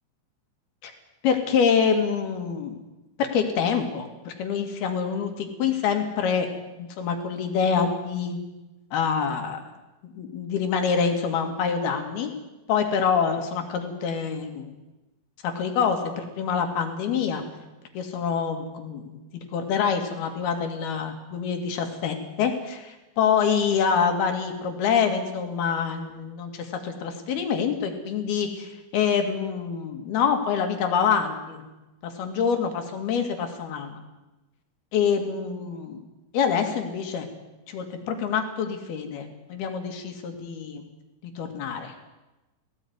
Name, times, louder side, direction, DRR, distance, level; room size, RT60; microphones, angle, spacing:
voice 1, 1.2-2.8 3.2-6.5 6.8-8.4 8.9-9.6 10.0-12.3 12.7-14.7 15.4-17.4 17.9-31.6 32.0-34.0 34.9-36.0 36.3-37.3 37.7-40.8 41.4-42.0, left 6 dB, 80° left, 5 dB, 4.3 m, -26 dB
18.5 x 17.0 x 9.6 m, 1.1 s
omnidirectional pair, 4.4 m